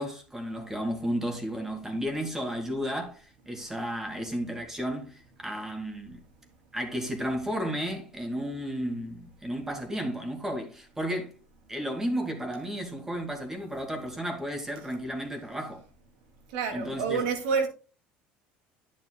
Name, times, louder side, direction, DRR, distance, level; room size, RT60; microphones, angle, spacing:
voice 1, 0.0-6.2 6.7-11.3 11.7-15.8 16.7-17.2, equal, 10° right, 2.2 m, -33 dB
voice 2, 16.5-17.7, right 5 dB, 90° right, 2.7 m, -28 dB
10.5 x 7.4 x 2.3 m
supercardioid pair, 105°, 4 cm